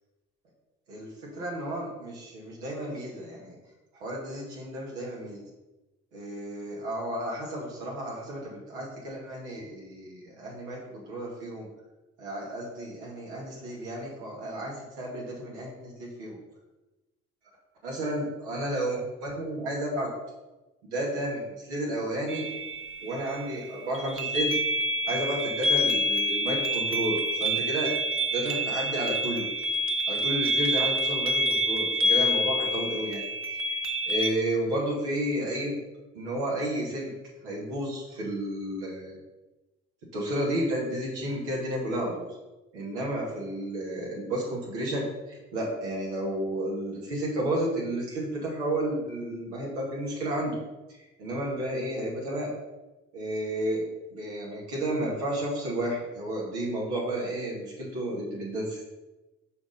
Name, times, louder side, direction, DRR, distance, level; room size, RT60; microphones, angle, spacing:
voice 1, 1.4-3.5 4.0-5.4 6.1-11.7 12.2-16.4 17.8-20.1 20.8-22.4 23.0-24.6 25.1-27.9 28.3-29.5 30.1-33.2 33.5-33.8 34.1-35.8 36.1-37.1 37.4-39.2 40.1-42.3 42.7-50.6 51.2-52.5 53.1-53.8 54.1-58.8, right 1 dB, 85° right, -4 dB, 2.4 m, -32 dB
sound 1, 22.3-34.3, equal, 40° right, 1.2 m, -27 dB
6.8 x 5.0 x 5.5 m, 1.1 s
hypercardioid pair, 55°, 33 cm